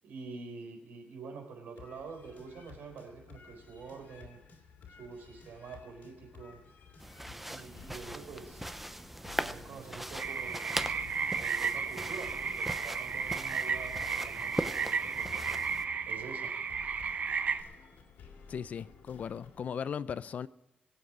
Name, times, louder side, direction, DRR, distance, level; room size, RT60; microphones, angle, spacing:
voice 1, 0.0-4.4 4.9-6.6 7.4-8.6 9.4-10.6 11.4-15.6 16.0-16.6, right 4 dB, 85° right, 4.3 m, -47 dB
sound 1, 1.8-19.7, left 6 dB, 85° left, 2.9 m, -54 dB
sound 2, 7.0-15.8, right 1 dB, 5° right, 0.6 m, -40 dB
sound 3, 10.2-17.6, right 6 dB, 50° right, 0.8 m, -34 dB
voice 2, 18.5-20.5, left 7 dB, 55° left, 0.5 m, -37 dB
22.5 x 8.0 x 4.8 m
wide cardioid pair, 130°, 3 cm